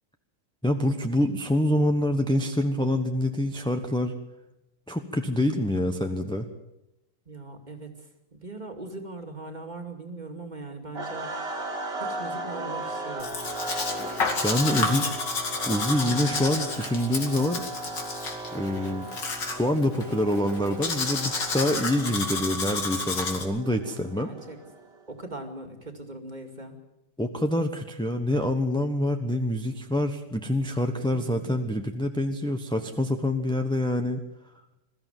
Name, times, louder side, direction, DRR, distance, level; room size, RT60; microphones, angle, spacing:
voice 1, 0.6-4.2 4.9-6.5 14.4-15.0 15.6-17.6 18.5-19.1 19.4-24.3 27.2-34.2, left 1 dB, 5° left, 5 dB, 0.9 m, -26 dB
voice 2, 7.3-11.3 12.0-13.4 14.7-15.1 24.2-24.6 25.1-26.8 31.1-31.5, right 2 dB, 25° right, 4 dB, 2.5 m, -40 dB
sound 1, 10.9-25.0, right 2 dB, 75° right, 3.6 m, -37 dB
Domestic sounds home sounds, 13.2-23.4, left 4 dB, 85° left, 3.1 m, -31 dB
21.5 x 14.0 x 9.2 m, 0.91 s
omnidirectional pair, 1.9 m